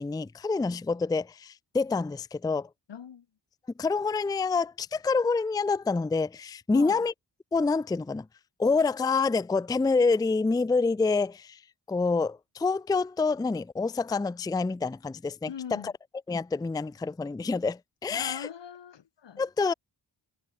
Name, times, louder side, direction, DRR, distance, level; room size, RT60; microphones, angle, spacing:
voice 1, 0.0-2.7 3.8-7.1 7.5-8.3 8.6-11.6 11.9-15.9 16.3-18.5 19.4-19.7, left 4 dB, 10° left, 0.4 m, -27 dB
voice 2, 2.9-3.3 6.7-7.1 15.5-15.9 18.1-19.4, left 8 dB, 85° left, 4.9 m, -41 dB
wide cardioid pair, 165°, 42 cm